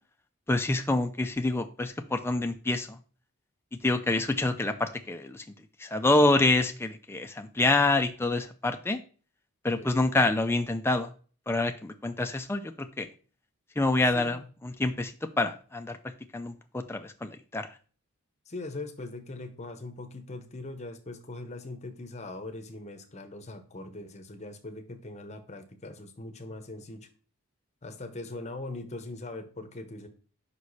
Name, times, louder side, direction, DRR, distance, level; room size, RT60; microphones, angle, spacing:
voice 1, 0.5-2.9 3.8-5.4 5.8-9.0 9.6-11.1 11.5-13.1 13.8-16.0 16.3-17.7, left 2 dB, 10° left, 6 dB, 0.4 m, -27 dB
voice 2, 14.1-14.5 18.5-27.1 27.8-30.1, left 2 dB, 30° left, 7 dB, 0.8 m, -41 dB
5.4 x 4.8 x 4.0 m, 0.40 s
head